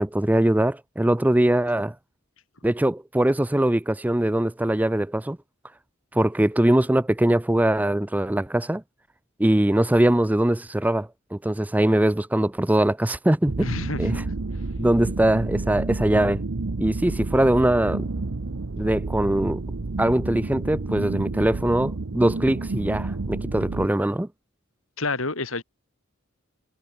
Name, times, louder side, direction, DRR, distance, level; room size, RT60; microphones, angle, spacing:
voice 1, 0.0-1.9 2.6-5.4 6.1-8.8 9.4-13.7 14.0-14.2 14.8-16.4 16.8-18.1 18.8-19.6 20.0-24.3, right 1 dB, 5° right, 0.4 m, -22 dB
sound 1, 13.5-23.9, right 3 dB, 65° right, 0.8 m, -30 dB
voice 2, 13.6-14.2 25.0-25.6, left 3 dB, 70° left, 3.1 m, -28 dB
head